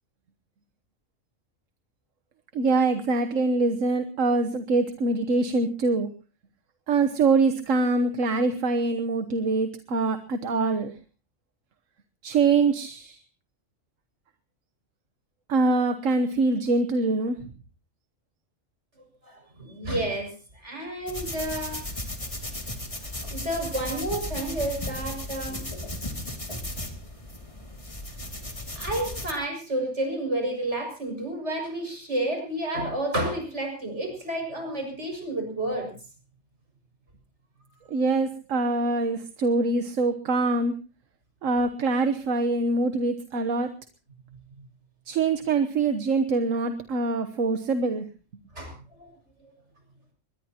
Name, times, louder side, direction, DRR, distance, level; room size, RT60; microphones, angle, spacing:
voice 1, 2.5-6.1 6.9-10.9 12.2-13.2 15.5-17.4 37.9-40.7 41.4-43.7 45.1-48.1, right 3 dB, 85° right, 9 dB, 1.5 m, -24 dB
voice 2, 19.2-21.8 23.3-25.6 28.7-35.9 48.5-49.1, right 1 dB, 65° right, 3 dB, 6.8 m, -30 dB
sound 1, 21.1-29.3, left 1 dB, 25° left, 2.5 m, -35 dB
23.0 x 20.5 x 2.9 m, 0.34 s
omnidirectional pair, 1.3 m